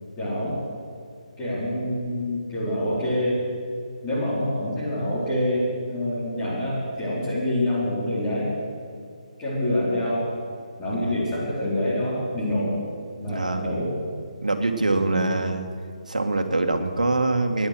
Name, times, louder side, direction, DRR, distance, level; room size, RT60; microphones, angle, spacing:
voice 1, 0.2-0.6 1.4-3.5 4.0-8.5 9.4-10.3 10.8-12.8 13.2-14.0 14.9-15.3, left 1 dB, 20° left, -8 dB, 4.5 m, -26 dB
voice 2, 13.3-13.7 14.4-15.6 16.1-17.7, right 2 dB, 75° right, 5 dB, 1.7 m, -24 dB
17.5 x 10.5 x 6.3 m, 2.2 s
figure-of-eight pair, 145°, 4 cm